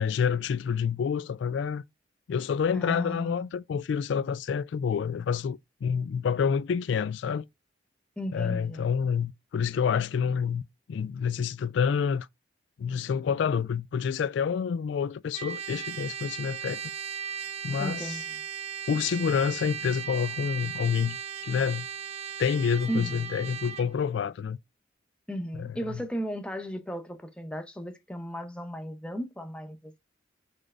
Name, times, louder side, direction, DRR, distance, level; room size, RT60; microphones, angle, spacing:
voice 1, 0.0-1.8 2.3-7.5 8.3-10.6 10.9-12.3 12.8-16.9 17.6-18.2 18.9-21.2 21.4-21.9 22.4-24.6 25.6-26.0, left 6 dB, 80° left, 0.3 m, -28 dB
voice 2, 2.7-3.5 8.2-8.9 17.8-18.4 22.9-23.3 25.3-30.0, equal, 5° left, 0.7 m, -35 dB
Trumpet, 15.3-23.9, right 8 dB, 35° right, 0.5 m, -37 dB
6.2 x 3.3 x 2.5 m
head